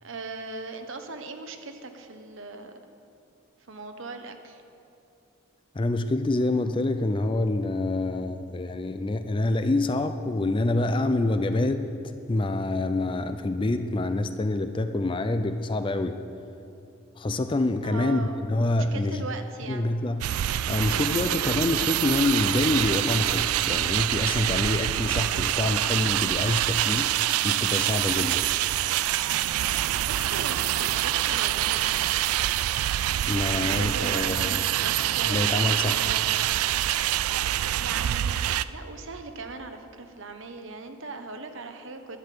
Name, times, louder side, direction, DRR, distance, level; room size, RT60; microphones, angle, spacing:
voice 1, 0.0-2.7 3.6-4.6 17.8-18.4 18.7-19.9 30.1-32.0 33.6-36.4 37.8-42.2, right 3 dB, 60° right, 7 dB, 0.9 m, -39 dB
voice 2, 5.7-11.9 12.3-16.2 17.2-19.2 19.7-20.2 20.7-28.5 33.3-34.6 35.3-36.0, left 2 dB, 25° left, 9 dB, 0.4 m, -26 dB
sound 1, 20.2-38.6, right 13 dB, 85° right, 0.3 m, -26 dB
11.0 x 9.6 x 6.7 m, 2.7 s
head